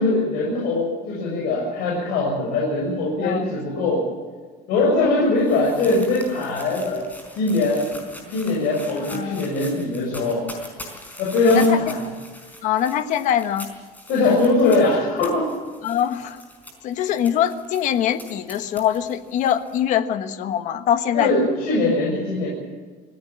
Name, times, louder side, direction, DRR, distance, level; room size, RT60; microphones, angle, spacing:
voice 1, 0.0-4.1 4.7-7.0 7.4-7.9 8.3-10.5 11.2-12.0 14.1-15.5 21.1-22.5, left 2 dB, 60° left, -3 dB, 7.1 m, -21 dB
sound 1, 4.8-19.8, left 1 dB, 10° left, 4.5 m, -42 dB
voice 2, 9.1-9.5 11.5-11.9 12.6-13.7 15.8-16.4 16.8-21.3, left 10 dB, 45° left, 9 dB, 1.4 m, -23 dB
25.5 x 17.0 x 7.5 m, 1.5 s
cardioid pair, 175°, 18 cm